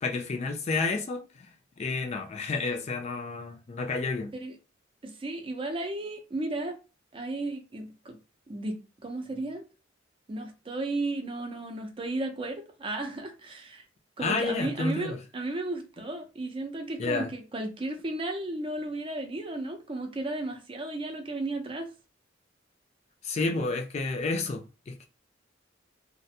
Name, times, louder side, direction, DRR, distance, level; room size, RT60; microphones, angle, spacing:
voice 1, 0.0-4.3 14.2-15.2 17.0-17.3 23.2-25.1, left 3 dB, 35° left, 0.3 m, -30 dB
voice 2, 5.0-6.8 7.1-8.2 8.5-9.6 10.3-13.8 14.2-21.9, right 2 dB, 30° right, 0.5 m, -34 dB
2.4 x 2.1 x 2.6 m
head